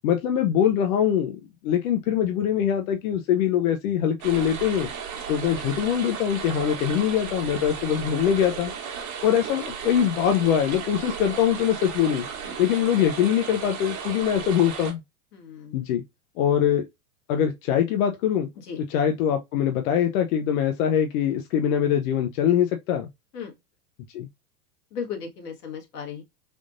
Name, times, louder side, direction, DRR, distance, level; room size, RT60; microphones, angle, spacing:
voice 1, 0.0-4.9 5.3-8.7 9.2-12.3 12.6-15.0 15.7-16.0 16.4-16.9 17.3-18.5 18.9-23.1 24.1-24.3, left 9 dB, 60° left, 0.6 m, -23 dB
sound 1, 4.2-14.9, right 6 dB, 40° right, 1.2 m, -35 dB
voice 2, 15.3-15.9 18.7-18.8 23.3-23.5 24.9-26.2, left 6 dB, 80° left, 1.5 m, -36 dB
3.5 x 2.5 x 2.5 m
hypercardioid pair, 110°, 46 cm